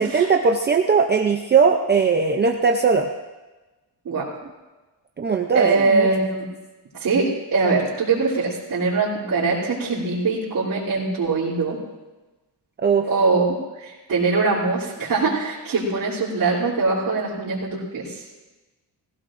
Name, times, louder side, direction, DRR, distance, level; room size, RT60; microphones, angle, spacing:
voice 1, 0.0-3.1 5.2-6.1 12.8-13.1, right 5 dB, 25° right, 3 dB, 0.5 m, -19 dB
voice 2, 5.5-6.4 6.9-11.8 13.0-18.2, right 3 dB, 50° right, -10 dB, 3.2 m, -22 dB
20.0 x 16.0 x 2.6 m, 1.2 s
wide cardioid pair, 170°, 45 cm